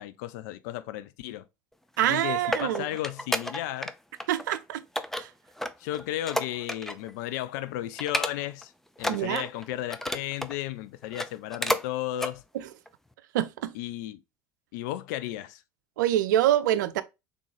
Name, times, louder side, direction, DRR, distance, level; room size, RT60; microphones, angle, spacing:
voice 1, 0.0-1.5 2.1-3.9 5.8-8.7 9.0-12.4 13.7-14.2 14.7-15.6, left 14 dB, 70° left, 0.4 m, -34 dB
sound 1, 2.0-3.9 4.2-4.6 5.0-7.1 7.4-7.6 8.0-8.6 9.0-10.6 11.0-11.9 12.2-12.3 12.9-13.0, equal, 5° left, 0.4 m, -32 dB
voice 2, 2.0-2.9 4.3-4.8 5.2-5.3 9.1-9.5 13.3-13.7 16.0-17.0, right 12 dB, 80° right, 0.4 m, -25 dB
3.8 x 3.6 x 3.2 m
hypercardioid pair, 70°, 10 cm